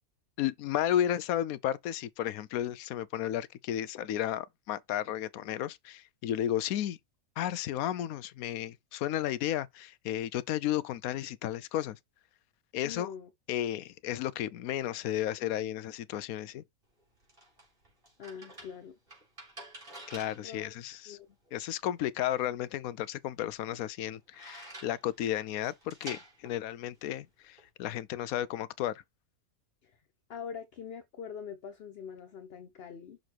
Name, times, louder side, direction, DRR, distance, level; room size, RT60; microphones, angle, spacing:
voice 1, 0.4-7.0 7.4-12.0 12.7-13.1 13.5-16.6 20.1-21.2 21.5-29.0, left 11 dB, 85° left, 1.1 m, -33 dB
voice 2, 12.8-13.3 18.2-18.9 20.4-20.7 21.1-21.3 29.8-30.0 30.3-33.2, left 7 dB, 50° left, 0.9 m, -43 dB
sound 1, 16.8-27.7, right 1 dB, 40° right, 3.6 m, -51 dB
6.4 x 3.8 x 4.4 m
omnidirectional pair, 1.5 m